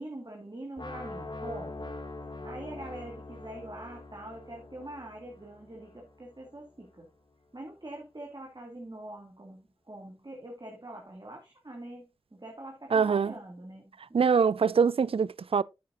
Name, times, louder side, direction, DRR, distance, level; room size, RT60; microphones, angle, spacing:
voice 1, 0.0-1.9 2.4-7.1 7.5-14.2, right 1 dB, 40° right, 2.7 m, -44 dB
sound 1, 0.8-6.7, left 2 dB, 50° left, 2.4 m, -43 dB
voice 2, 12.9-13.3 14.1-15.6, right 6 dB, 65° right, 0.4 m, -24 dB
10.5 x 9.4 x 2.6 m
cardioid pair, 40°, 10 cm